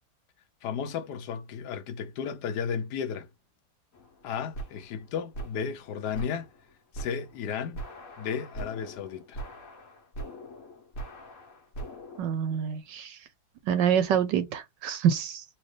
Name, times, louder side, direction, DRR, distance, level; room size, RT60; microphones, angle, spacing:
voice 1, 0.6-3.3 4.2-6.5 6.9-7.8 8.2-9.4, left 7 dB, 70° left, 1.1 m, -34 dB
sound 1, 3.9-12.2, right 2 dB, 45° left, 1.6 m, -42 dB
voice 2, 12.2-13.2 13.7-15.4, right 8 dB, 75° right, 1.2 m, -26 dB
4.2 x 2.7 x 3.1 m
omnidirectional pair, 2.1 m